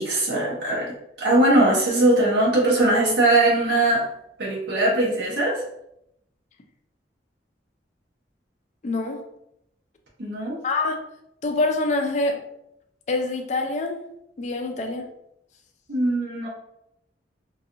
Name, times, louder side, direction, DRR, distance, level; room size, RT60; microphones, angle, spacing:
voice 1, 0.0-4.1 4.4-5.6 10.2-10.6 15.9-16.5, right 1 dB, 75° right, -5 dB, 0.7 m, -20 dB
voice 2, 8.8-9.2 10.6-11.0 11.4-12.4 13.1-14.0 14.4-15.0, left 2 dB, 40° left, 4 dB, 0.3 m, -25 dB
2.7 x 2.3 x 2.4 m, 0.79 s
head